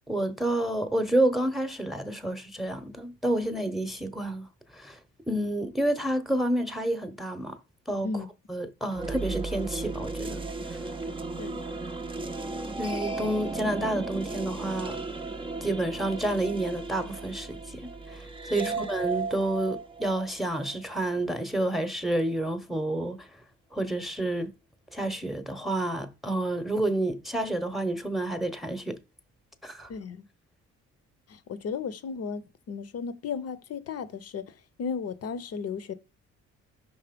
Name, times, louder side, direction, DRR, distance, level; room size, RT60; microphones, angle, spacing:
voice 1, 0.1-4.5 4.7-5.0 5.3-7.6 7.9-8.1 8.5-10.4 10.7-10.8 12.8-15.0 15.6-23.3 23.7-24.5 24.9-29.0 29.6-29.9, right 1 dB, ahead, 0.9 m, -29 dB
sound 1, 8.9-21.1, right 3 dB, 15° right, 0.5 m, -35 dB
voice 2, 29.9-30.2 31.3-35.9, left 5 dB, 55° left, 0.7 m, -35 dB
5.4 x 3.4 x 5.1 m
cardioid pair, 90°, 30 cm